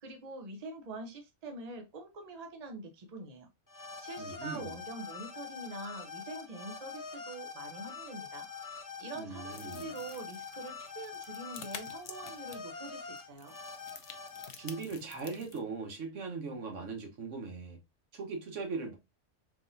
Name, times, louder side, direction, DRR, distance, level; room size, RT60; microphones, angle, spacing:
voice 1, 0.0-3.5 3.7-13.5, right 2 dB, 40° right, 0.8 m, -45 dB
sound 1, 3.7-14.8, left 5 dB, 20° left, 0.6 m, -45 dB
voice 2, 4.2-4.8 9.1-9.9 14.6-17.8 18.1-19.0, right 4 dB, 80° right, 1.4 m, -39 dB
sound 2, 9.5-15.6, left 7 dB, 70° left, 0.9 m, -50 dB
3.9 x 3.6 x 2.6 m
omnidirectional pair, 1.3 m